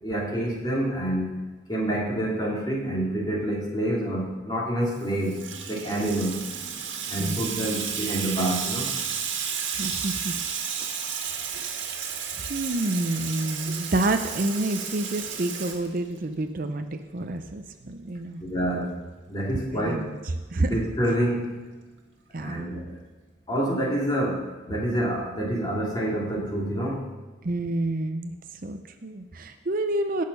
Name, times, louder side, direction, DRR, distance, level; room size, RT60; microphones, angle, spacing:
voice 1, 0.0-1.3 1.7-5.4 5.7-6.4 7.1-8.9 18.4-19.0 19.3-20.1 20.6-21.6 22.4-23.0 23.5-27.1, right 1 dB, 20° left, -3 dB, 2.7 m, -27 dB
Water tap faucet / Sink (filling or washing), 4.9-16.4, right 7 dB, 75° right, 1.8 m, -32 dB
voice 2, 9.8-10.3 11.2-11.9 12.4-18.4 19.7-20.2 20.5-20.7 22.3-22.7 27.4-30.2, right 2 dB, 45° right, 7 dB, 0.6 m, -29 dB
17.5 x 6.5 x 5.4 m, 1.2 s
head